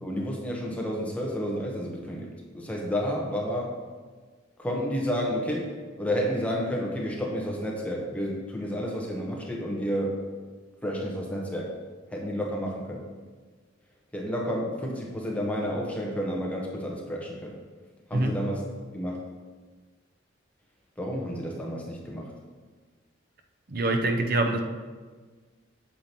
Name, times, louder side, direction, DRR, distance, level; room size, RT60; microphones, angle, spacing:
voice 1, 0.0-3.8 4.6-10.3 10.8-11.7 12.1-13.0 14.1-17.6 18.1-18.6 18.9-19.2 21.0-22.3, equal, 5° left, -2 dB, 0.9 m, -31 dB
voice 2, 23.7-24.6, right 2 dB, 45° right, 4 dB, 0.6 m, -25 dB
8.4 x 7.6 x 2.9 m, 1.4 s
head